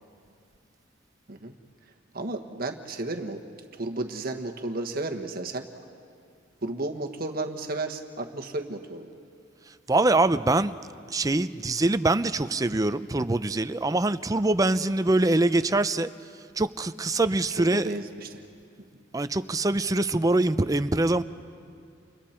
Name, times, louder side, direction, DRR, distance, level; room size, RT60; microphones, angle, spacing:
voice 1, 2.1-3.4 3.7-5.7 6.6-9.1 17.6-18.4, right 2 dB, 50° right, 3 dB, 1.4 m, -33 dB
voice 2, 9.9-10.7 11.1-16.1 16.6-17.9 19.1-21.2, right 2 dB, 20° right, 12 dB, 0.5 m, -24 dB
30.0 x 29.5 x 4.4 m, 2.3 s
head